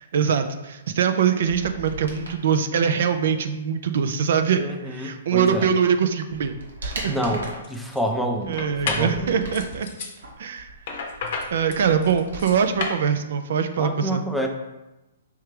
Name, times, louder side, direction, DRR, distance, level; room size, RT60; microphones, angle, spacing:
voice 1, 0.0-6.5 6.8-7.2 8.5-9.9 10.4-10.7 11.5-14.2, right 7 dB, 60° right, 8 dB, 0.4 m, -23 dB
sound 1, 1.4-2.4 5.5-5.6 6.0-7.7 8.3-9.8 10.2-12.8 13.1-13.2, right 2 dB, 80° right, 1.2 m, -38 dB
voice 2, 4.5-5.7 7.0-9.4 13.8-14.5, right 1 dB, ahead, 1 dB, 0.5 m, -28 dB
sound 2, 6.9-7.0 7.4-8.0 8.6-9.1 9.5-10.2 10.9-13.0, left 4 dB, 50° left, 0.7 m, -31 dB
4.9 x 3.2 x 3.2 m, 1.0 s
hypercardioid pair, 130°, 0 cm